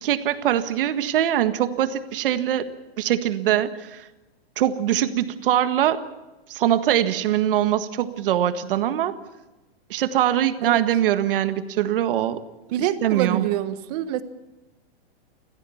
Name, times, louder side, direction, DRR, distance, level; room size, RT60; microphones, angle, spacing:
voice 1, 0.0-2.7 3.0-4.0 4.6-6.0 6.5-9.1 9.9-12.4 13.0-13.4, right 11 dB, 60° right, 10 dB, 1.7 m, -22 dB
voice 2, 12.7-14.2, right 11 dB, 40° right, 11 dB, 1.5 m, -26 dB
29.0 x 15.5 x 7.2 m, 1.1 s
hypercardioid pair, 155°, 31 cm